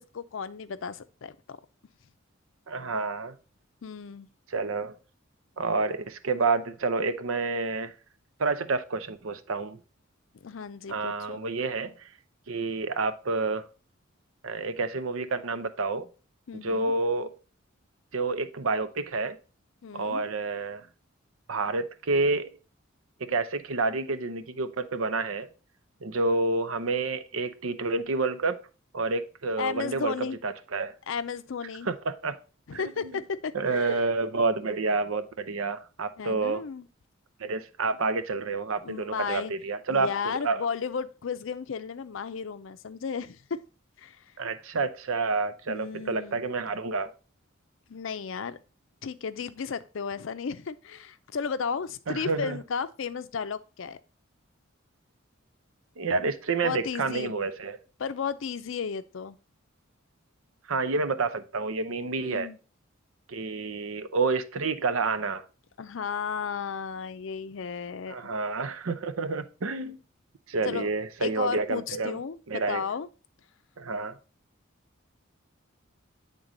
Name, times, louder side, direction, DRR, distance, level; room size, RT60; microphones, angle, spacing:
voice 1, 0.0-1.6 3.8-4.3 10.4-11.4 16.5-16.9 19.8-20.2 29.6-30.4 31.1-31.9 32.7-34.0 36.2-36.9 38.8-39.5 39.9-43.6 44.0-44.2 45.7-46.5 47.9-48.6 49.0-54.0 56.6-57.3 58.0-59.4 62.2-62.6 65.8-68.3 70.6-70.9 71.2-73.1, left 6 dB, 65° left, 0.5 m, -34 dB
voice 2, 2.7-3.3 4.5-5.0 5.6-7.9 8.4-9.8 10.9-12.1 12.5-13.7 14.4-16.1 16.6-17.3 18.1-19.4 19.9-20.9 21.5-22.6 23.2-25.5 26.0-28.6 28.9-30.9 31.8-32.4 32.7-33.1 33.5-36.6 37.4-40.6 44.4-47.1 52.1-52.6 56.0-57.8 60.7-62.5 63.3-65.4 68.1-70.0 70.5-72.2 72.5-72.9 73.8-74.2, right 3 dB, 80° right, 0.6 m, -29 dB
8.8 x 3.7 x 3.8 m
head